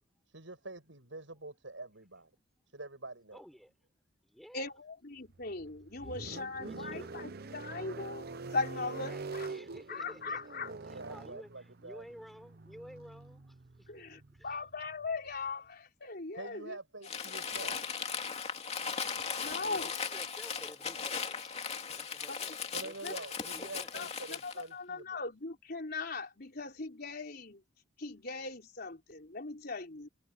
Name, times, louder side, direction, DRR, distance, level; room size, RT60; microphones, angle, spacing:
voice 1, 0.3-2.3 2.7-3.4 10.7-12.0 16.3-17.8 22.7-25.2, right 2 dB, 85° right, 6.9 m, -46 dB
voice 2, 3.3-3.7 4.2-4.7 6.0-7.3 8.7-10.4 10.9-14.6 19.7-21.6 21.9-22.6 22.8-23.9, equal, ahead, 5.6 m, -53 dB
voice 3, 4.5-9.5 9.9-10.7 13.9-16.8 19.4-19.9 22.3-22.6 23.0-23.1 23.9-27.6 28.0-30.1, left 3 dB, 55° left, 4.0 m, -39 dB
sound 1, 5.3-15.5, right 3 dB, 55° right, 0.9 m, -45 dB
Crumpling crinkling, 17.0-24.6, left 6 dB, 35° left, 2.6 m, -38 dB
head